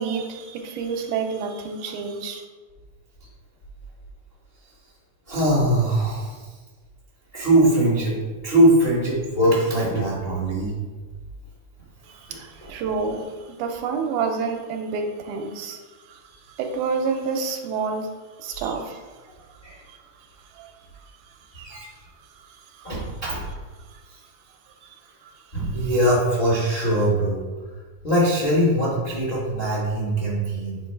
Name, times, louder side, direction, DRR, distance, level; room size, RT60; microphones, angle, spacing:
voice 1, 0.0-2.4 12.0-15.8 16.1-16.2 16.5-18.1 18.4-19.0 19.9-20.0 20.6-20.7 21.0-21.1 21.7-21.9 22.4-22.9 23.9-24.0 25.2-25.3, right 5 dB, 80° right, 5 dB, 2.1 m, -29 dB
voice 2, 5.3-6.5 7.3-8.2 8.4-10.7 12.6-12.7 18.5-18.7 19.6-19.8 21.5-21.9 22.8-23.4 25.5-27.4 28.0-30.8, right 1 dB, 45° left, -6 dB, 0.7 m, -21 dB
7.3 x 3.1 x 4.5 m, 1.4 s
omnidirectional pair, 3.6 m